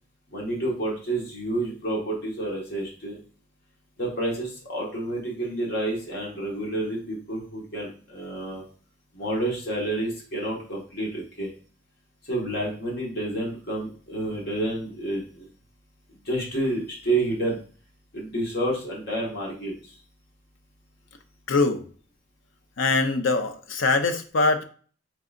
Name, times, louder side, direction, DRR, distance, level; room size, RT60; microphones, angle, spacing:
voice 1, 0.3-3.2 4.0-8.6 9.1-11.5 12.2-15.5 16.2-17.6 18.1-19.7, right 1 dB, 55° left, -2 dB, 1.3 m, -29 dB
voice 2, 21.5-21.9 22.8-24.6, left 3 dB, 85° left, 7 dB, 0.6 m, -23 dB
4.6 x 3.8 x 2.4 m, 0.42 s
head